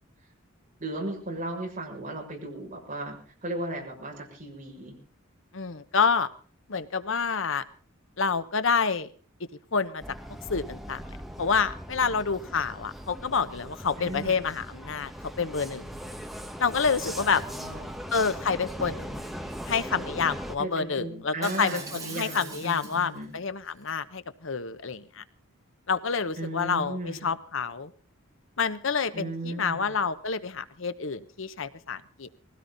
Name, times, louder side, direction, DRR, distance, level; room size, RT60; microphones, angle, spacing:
voice 1, 0.8-3.2 3.4-4.9 14.0-14.4 17.0-17.9 20.6-23.3 26.4-27.3 29.1-29.9, right 1 dB, 40° right, 0 dB, 6.6 m, -36 dB
voice 2, 5.5-6.3 6.7-7.6 8.2-9.1 9.7-10.0 10.5-11.0 11.4-15.1 15.4-15.9 16.6-17.4 18.1-19.2 19.7-25.2 25.9-27.9 28.6-32.3, left 5 dB, 70° left, 13 dB, 1.0 m, -28 dB
Vehicle, 10.0-20.6, equal, ahead, 1.3 m, -39 dB
Shatter, 21.4-23.2 23.7-23.9, right 4 dB, 20° right, 4.6 m, -42 dB
20.5 x 16.5 x 4.0 m, 0.41 s
head